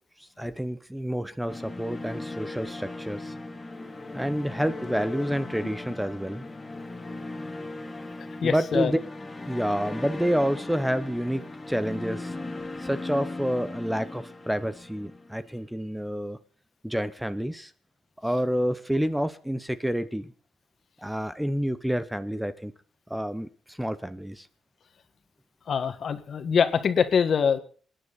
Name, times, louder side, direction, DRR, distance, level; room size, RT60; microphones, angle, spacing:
voice 1, 0.4-3.3 4.1-6.5 8.4-9.0 9.5-11.4 11.7-12.3 12.8-16.4 16.8-17.7 18.2-20.3 21.0-22.7 23.1-23.5 23.8-24.4, equal, 5° right, 13 dB, 0.8 m, -28 dB
sound 1, 1.5-15.6, left 2 dB, 20° left, 2.1 m, -38 dB
voice 2, 8.4-8.9 25.7-27.6, left 6 dB, 55° left, 9 dB, 1.6 m, -24 dB
26.0 x 9.9 x 4.1 m, 0.41 s
cardioid pair, 100°, 0 cm